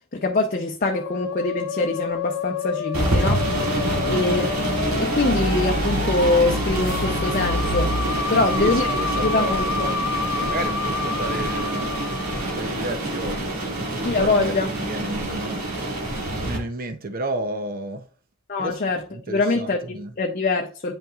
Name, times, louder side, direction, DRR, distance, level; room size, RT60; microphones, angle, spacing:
voice 1, 0.1-3.5 4.1-4.5 4.8-7.9 8.3-9.9 14.0-14.7 18.5-21.0, left 3 dB, 40° left, 0.6 m, -24 dB
Musical instrument, 0.9-12.7, left 5 dB, 80° left, 0.6 m, -30 dB
sound 1, 2.9-16.6, right 1 dB, 80° right, 2.4 m, -26 dB
voice 2, 3.9-4.4 8.3-15.6 16.4-18.1 18.6-18.8 19.1-20.1, right 1 dB, 40° right, 0.7 m, -32 dB
8.9 x 5.7 x 2.4 m
head